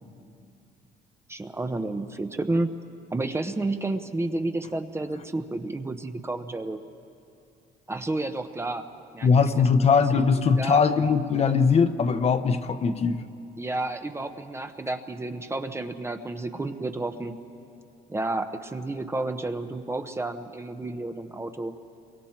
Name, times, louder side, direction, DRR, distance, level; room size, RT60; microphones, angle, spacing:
voice 1, 1.3-2.7 3.1-6.8 7.9-8.8 9.1-10.2 10.5-10.8 13.6-17.3 18.1-21.7, right 2 dB, 15° right, 7 dB, 0.8 m, -31 dB
voice 2, 9.2-13.2, left 5 dB, 40° left, 8 dB, 0.9 m, -21 dB
28.5 x 23.5 x 4.4 m, 2.5 s
cardioid pair, 110°, 17 cm